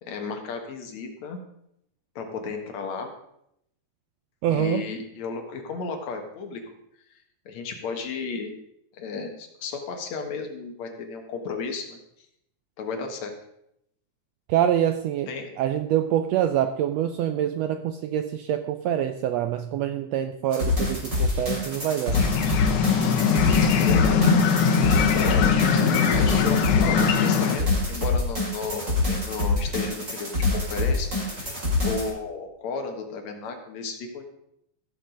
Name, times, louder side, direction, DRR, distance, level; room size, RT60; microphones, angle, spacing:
voice 1, 0.0-1.4 2.2-3.1 4.5-6.6 7.5-8.5 8.9-12.0 12.8-13.3 15.3-15.5 23.7-24.3 25.1-25.6 26.0-31.1 31.4-34.2, left 4 dB, 65° left, 4 dB, 2.6 m, -33 dB
voice 2, 4.4-4.9 14.5-15.3 15.6-22.2, right 10 dB, 80° right, 9 dB, 1.5 m, -25 dB
sound 1, 20.5-32.1, left 2 dB, 25° right, 4.2 m, -26 dB
sound 2, 22.1-27.6, left 6 dB, 85° left, 2.5 m, -21 dB
15.0 x 6.8 x 5.1 m, 0.77 s
omnidirectional pair, 3.5 m